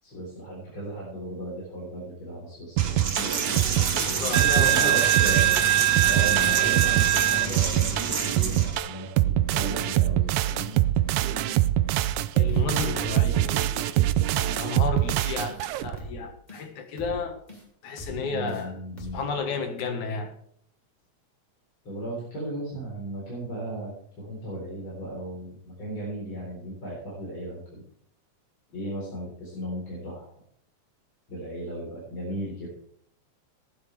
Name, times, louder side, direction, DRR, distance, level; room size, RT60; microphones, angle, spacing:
voice 1, 0.0-5.5 6.1-10.8 18.2-19.2 21.8-23.9 24.2-27.8 28.7-30.3 31.3-32.7, right 1 dB, 45° left, 4.8 m, -36 dB
Coin (dropping), 2.8-8.8, right 10 dB, 50° right, 1.4 m, -23 dB
sound 1, 2.8-16.0, right 14 dB, 85° right, 2.0 m, -25 dB
voice 2, 3.9-5.0 5.3-5.4 12.3-17.4 17.8-18.7 19.1-20.3, left 5 dB, 85° left, 3.0 m, -32 dB
sound 2, 11.5-11.7 12.0-12.2 12.5-12.6 13.0-13.2 13.5-13.7 14.0-14.2 14.5-14.7 15.0-15.2 15.5-15.6 16.0-16.2 16.5-16.7 17.0-17.2 17.5-17.6 18.0-18.2 18.5-18.7 19.0-19.2, equal, 15° left, 2.6 m, -41 dB
19.0 x 9.6 x 3.4 m
omnidirectional pair, 3.3 m